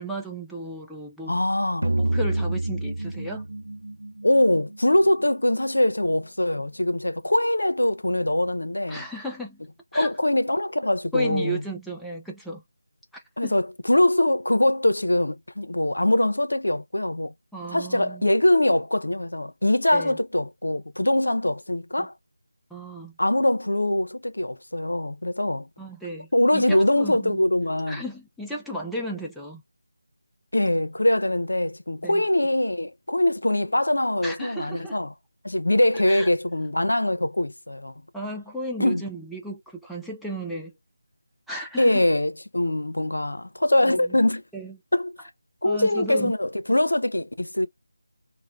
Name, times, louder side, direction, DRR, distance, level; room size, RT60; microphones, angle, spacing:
voice 1, 0.0-1.4 1.8-3.5 8.9-9.6 9.9-10.1 11.1-12.6 13.1-13.5 17.5-18.3 19.9-20.2 22.0-22.1 22.7-23.2 25.8-27.4 27.9-29.6 32.0-32.2 34.2-35.0 36.1-36.3 38.1-40.7 41.5-42.0 43.8-44.2 44.5-44.8 45.6-46.3, right 1 dB, ahead, 0.5 m, -34 dB
voice 2, 1.3-1.9 4.2-9.0 9.9-11.6 13.4-17.3 17.7-22.1 23.2-25.7 26.3-28.0 30.5-35.1 35.4-37.9 38.8-39.0 41.8-44.4 44.9-45.1 45.6-47.7, left 1 dB, 90° left, 0.6 m, -23 dB
sound 1, 1.8-5.1, right 2 dB, 85° right, 0.4 m, -28 dB
3.1 x 2.0 x 3.6 m
figure-of-eight pair, 170°, 0 cm